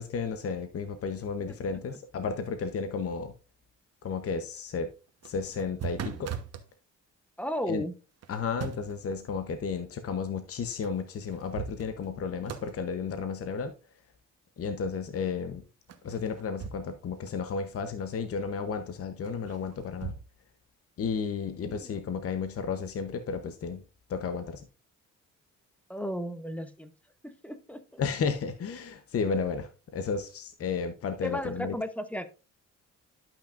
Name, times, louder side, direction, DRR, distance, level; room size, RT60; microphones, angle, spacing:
voice 1, 0.0-3.3 4.0-4.9 5.2-6.3 7.7-7.8 8.3-13.7 14.6-15.6 16.0-20.1 21.0-23.8 24.1-24.6 28.0-31.7, left 5 dB, 50° left, 0.9 m, -33 dB
sound 1, 5.1-6.7 8.2-9.0 10.8-10.9 11.3-12.2 12.5-12.8 15.9-17.0 17.3-17.4 19.2-20.2, right 7 dB, 55° right, 1.1 m, -39 dB
voice 2, 7.4-7.9 21.7-21.9 25.9-26.9 27.2-28.0 31.2-32.3, equal, 5° left, 0.9 m, -35 dB
11.0 x 5.9 x 2.5 m
cardioid pair, 90°, 30 cm